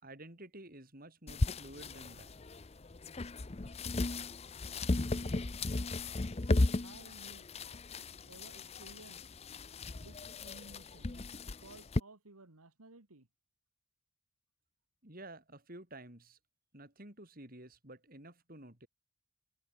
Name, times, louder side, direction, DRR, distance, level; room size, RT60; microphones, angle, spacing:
voice 1, 0.0-2.3 15.0-16.4 16.7-18.9, right 1 dB, 40° right, 4.8 m, -51 dB
sound 1, 1.3-12.0, left 2 dB, 30° left, 0.6 m, -36 dB
voice 2, 6.7-7.4 8.3-9.2 10.0-13.3, right 2 dB, 90° right, 2.3 m, -56 dB
head